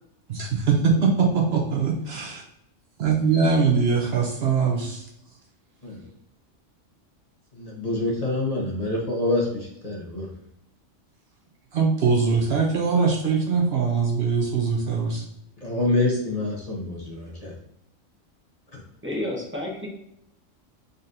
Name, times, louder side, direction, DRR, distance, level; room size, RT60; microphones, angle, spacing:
voice 1, 0.3-2.4 3.0-5.1 11.7-15.2, right 5 dB, 60° right, 0 dB, 0.8 m, -22 dB
voice 2, 7.5-10.3 15.6-17.5 18.7-18.8, left 2 dB, 35° left, -4 dB, 0.9 m, -26 dB
voice 3, 19.0-19.9, left 1 dB, 10° right, -3 dB, 0.7 m, -30 dB
4.0 x 3.9 x 2.5 m, 0.80 s
omnidirectional pair, 1.3 m